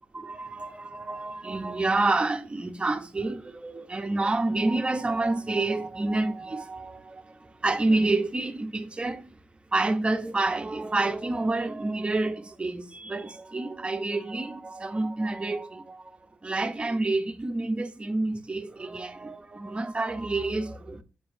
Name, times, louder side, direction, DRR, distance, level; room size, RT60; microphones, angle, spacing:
voice 1, 0.1-9.3 9.7-16.2 16.4-21.0, right 2 dB, 25° right, 0.8 m, -28 dB
6.8 x 5.3 x 2.6 m
cardioid pair, 85°, 5 cm